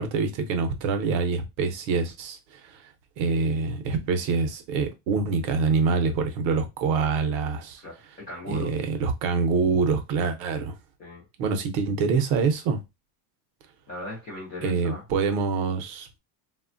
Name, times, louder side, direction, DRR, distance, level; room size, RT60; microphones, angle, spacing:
voice 1, 0.0-2.8 3.2-7.8 8.5-10.7 11.4-12.8 14.6-16.2, right 4 dB, 55° right, 0.6 m, -25 dB
voice 2, 7.8-8.7 11.0-11.2 13.9-15.0, left 2 dB, 20° left, 0.3 m, -38 dB
3.0 x 2.1 x 2.4 m
cardioid pair, 180°, 48 cm